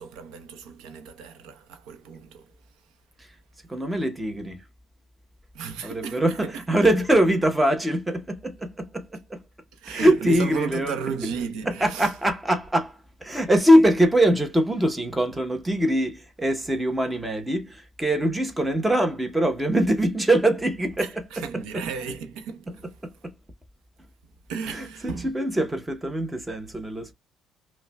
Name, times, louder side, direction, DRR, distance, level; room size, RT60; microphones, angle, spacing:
voice 1, 0.0-2.5 5.5-6.7 9.7-12.1 21.0-23.0 24.5-25.3, right 6 dB, 85° right, 0.7 m, -34 dB
voice 2, 3.7-4.6 5.8-9.4 9.9-11.0 11.7-21.2 22.7-22.8 23.0-23.3 24.7-27.1, right 1 dB, 10° right, 0.8 m, -23 dB
5.4 x 2.2 x 2.2 m
cardioid pair, 135°, 0 cm